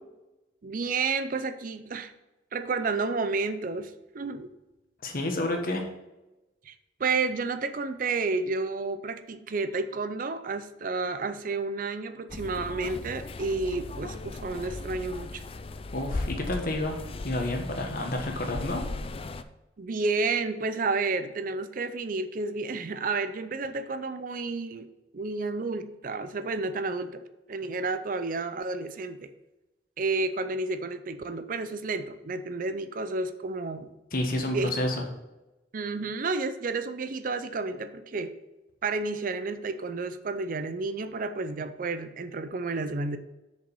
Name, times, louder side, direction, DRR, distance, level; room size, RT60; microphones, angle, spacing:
voice 1, 0.6-2.1 2.5-4.5 6.7-6.8 7.0-15.4 19.8-24.9 25.1-27.2 27.5-29.3 30.0-33.9 34.4-34.7 35.7-38.3 38.8-43.2, right 3 dB, 45° right, 11 dB, 0.5 m, -31 dB
voice 2, 5.0-5.9 15.9-18.8 34.1-35.0, left 1 dB, 50° left, 3 dB, 1.4 m, -30 dB
sound 1, 12.3-19.4, left 2 dB, 30° left, 0.4 m, -37 dB
7.0 x 5.2 x 5.5 m, 1.0 s
head